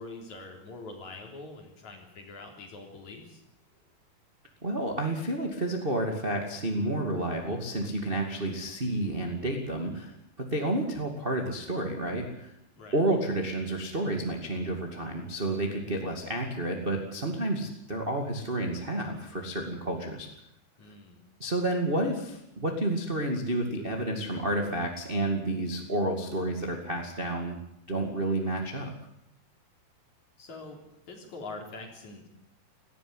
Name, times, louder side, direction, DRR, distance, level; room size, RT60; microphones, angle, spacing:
voice 1, 0.0-3.4 12.7-13.0 20.8-21.2 30.4-32.3, left 3 dB, 45° left, 3 dB, 4.6 m, -44 dB
voice 2, 4.6-12.5 12.9-20.3 21.4-27.6 27.9-28.9, right 1 dB, 20° right, 2 dB, 1.7 m, -30 dB
18.0 x 15.5 x 9.8 m, 0.80 s
omnidirectional pair, 4.7 m